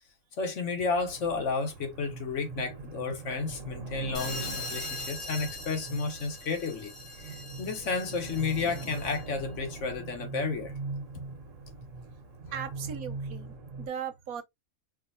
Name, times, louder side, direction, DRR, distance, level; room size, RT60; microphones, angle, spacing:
voice 1, 0.4-10.7 12.5-12.6, left 4 dB, 60° left, 1.3 m, -32 dB
sound 1, 0.9-13.9, right 3 dB, 65° right, 1.4 m, -42 dB
sound 2, 4.1-9.4, left 3 dB, 25° left, 0.9 m, -41 dB
voice 2, 12.5-14.4, right 8 dB, 90° right, 1.3 m, -38 dB
4.7 x 2.8 x 2.6 m
omnidirectional pair, 1.5 m